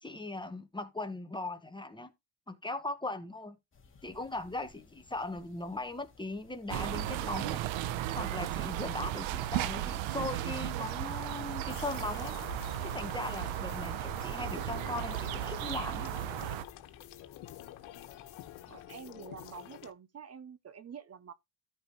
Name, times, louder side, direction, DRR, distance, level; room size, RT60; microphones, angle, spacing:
voice 1, 0.0-2.1 2.5-3.6 4.0-7.6 8.1-12.3 12.8-16.1, left 2 dB, 10° left, 1.3 m, -39 dB
sound 1, 3.7-18.9, left 4 dB, 25° left, 2.2 m, -60 dB
sound 2, 6.7-16.6, right 13 dB, 75° right, 0.9 m, -35 dB
sound 3, 11.6-19.9, left 13 dB, 80° left, 1.5 m, -47 dB
voice 2, 18.7-21.3, right 7 dB, 30° right, 0.8 m, -47 dB
13.5 x 5.3 x 3.1 m
cardioid pair, 130°, 47 cm